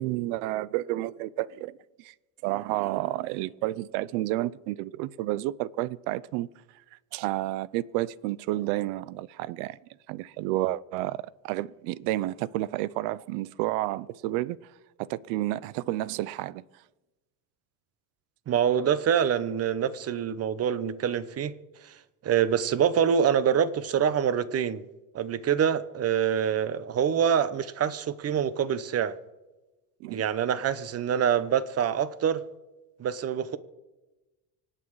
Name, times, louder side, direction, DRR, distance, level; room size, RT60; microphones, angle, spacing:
voice 1, 0.0-2.1 2.4-6.5 7.1-9.8 10.1-14.6 15.0-16.6 30.0-30.2, right 16 dB, 85° right, 0.7 m, -30 dB
voice 2, 18.5-21.5 21.8-22.0 22.2-24.8 25.1-29.2 30.1-32.4 33.0-33.6, right 8 dB, 35° right, 0.8 m, -25 dB
25.0 x 8.7 x 4.8 m
cardioid pair, 130°, 43 cm